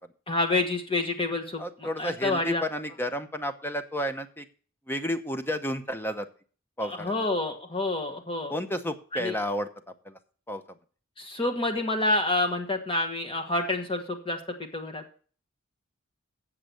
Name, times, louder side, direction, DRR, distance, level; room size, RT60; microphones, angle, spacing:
voice 1, 0.3-1.6 2.0-2.6 7.0-8.5 9.1-9.3 11.2-15.0, left 2 dB, 25° left, 4 dB, 1.2 m, -28 dB
voice 2, 1.6-4.5 4.9-6.3 6.8-7.3 8.5-9.7 10.0-10.2 10.5-10.6, equal, 10° left, 8 dB, 0.8 m, -31 dB
7.7 x 7.5 x 6.8 m, 0.41 s
head